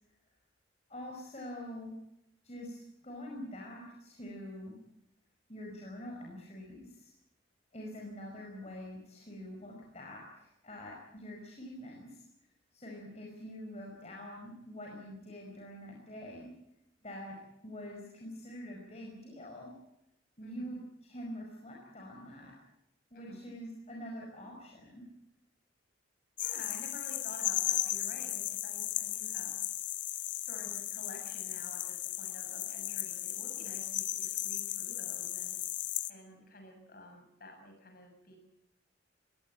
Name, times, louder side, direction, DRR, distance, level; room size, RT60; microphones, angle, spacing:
voice 1, 0.9-1.9 2.4-4.7 5.5-7.1 7.7-12.2 12.7-16.5 17.0-17.4 17.6-19.7 20.4-22.5 23.1-25.0, equal, 35° left, -1 dB, 5.2 m, -45 dB
voice 2, 20.4-20.7 23.1-23.4 26.4-29.6 30.4-35.6 36.1-38.4, left 1 dB, 50° left, 4 dB, 7.4 m, -51 dB
sound 1, 26.4-36.1, left 13 dB, 70° left, 1.1 m, -36 dB
21.5 x 18.5 x 8.9 m, 0.83 s
head